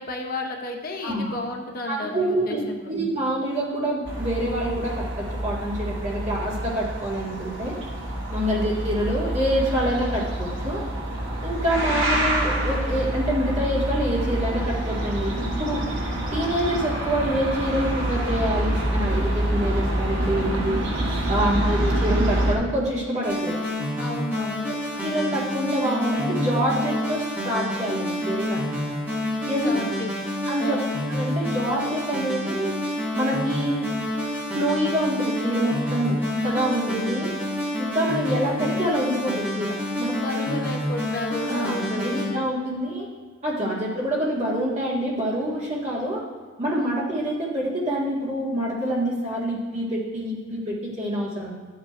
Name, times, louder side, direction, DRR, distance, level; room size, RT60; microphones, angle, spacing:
voice 1, 0.0-2.9 11.7-12.0 21.3-21.6 24.0-24.7 29.4-30.1 30.6-30.8 40.1-42.5 43.6-43.9 46.8-47.0, left 2 dB, 45° left, 1 dB, 0.7 m, -33 dB
voice 2, 1.9-7.8 8.3-10.8 11.4-15.8 16.3-20.8 21.3-23.6 25.0-28.6 29.5-29.8 30.5-30.8 31.1-32.7 33.1-33.9 34.5-37.3 37.8-40.2 40.5-40.6 41.5-43.1 43.4-46.2 46.6-51.5, right 1 dB, 35° right, -5 dB, 1.7 m, -26 dB
sound 1, 4.0-22.5, right 1 dB, 70° right, 1.3 m, -26 dB
sound 2, 23.2-42.3, left 1 dB, 10° right, 1.8 m, -28 dB
11.5 x 7.4 x 2.5 m, 1.5 s
head